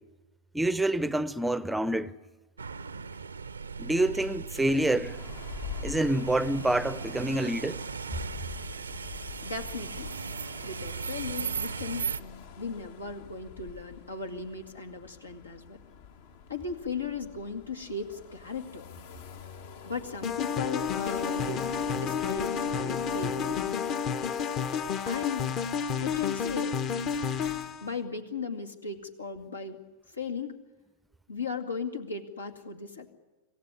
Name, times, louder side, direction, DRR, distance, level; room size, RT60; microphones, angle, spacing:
voice 1, 0.5-2.2 3.8-5.2 5.8-7.8, right 1 dB, 5° right, 0.7 m, -27 dB
sound 1, 2.6-12.2, right 5 dB, 75° right, 0.7 m, -37 dB
sound 2, 5.0-23.1, left 8 dB, 55° left, 1.5 m, -46 dB
voice 2, 9.4-10.1 10.6-15.8 16.5-18.8 19.8-21.6 21.9-23.8 25.0-25.5 26.0-26.7 27.8-29.8 30.1-30.5 31.3-33.1, left 4 dB, 80° left, 2.2 m, -37 dB
sound 3, 20.2-27.9, left 6 dB, 35° left, 1.1 m, -30 dB
26.5 x 15.5 x 10.0 m
figure-of-eight pair, 90°, 0 cm